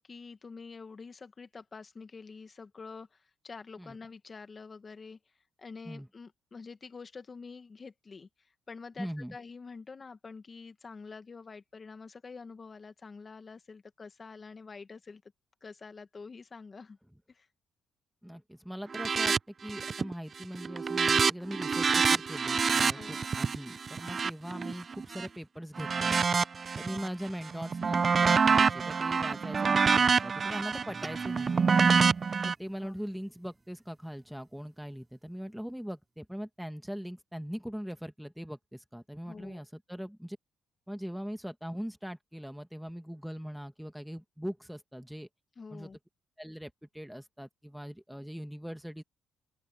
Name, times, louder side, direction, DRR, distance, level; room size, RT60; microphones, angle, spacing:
voice 1, 0.0-5.2 5.6-15.2 15.6-17.0 17.3-17.5 22.9-23.2 27.8-27.9 32.8-32.9 39.2-39.6 45.6-46.0, left 4 dB, 35° left, 1.6 m, -47 dB
voice 2, 9.0-9.4 18.2-26.2 26.8-32.0 32.4-40.4 40.9-45.3 45.7-45.9 46.4-49.0, equal, ahead, 2.0 m, -41 dB
sound 1, 18.9-19.4 19.7-20.1 20.4-25.3 25.8-27.1 27.5-32.5, right 5 dB, 40° right, 0.5 m, -27 dB
sound 2, 30.9-35.5, right 3 dB, 20° right, 4.0 m, -53 dB
open air
cardioid pair, 90°, 0 cm